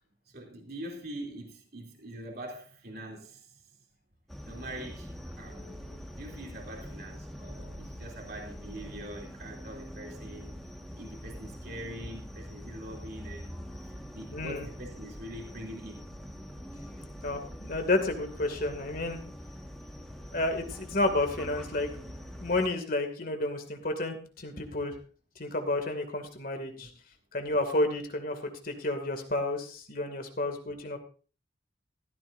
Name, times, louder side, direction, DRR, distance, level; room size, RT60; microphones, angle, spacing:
voice 1, 0.3-3.6 4.4-5.1 5.4-5.8 6.2-10.5 10.8-13.5 14.1-16.0 26.5-26.9, right 1 dB, 55° right, 3.2 m, -43 dB
sound 1, 4.3-22.7, equal, ahead, 1.7 m, -44 dB
voice 2, 14.3-14.7 17.2-19.2 20.3-21.9 22.4-24.9 25.4-26.9 27.3-31.0, left 2 dB, 50° left, 2.4 m, -31 dB
15.5 x 14.5 x 2.7 m
head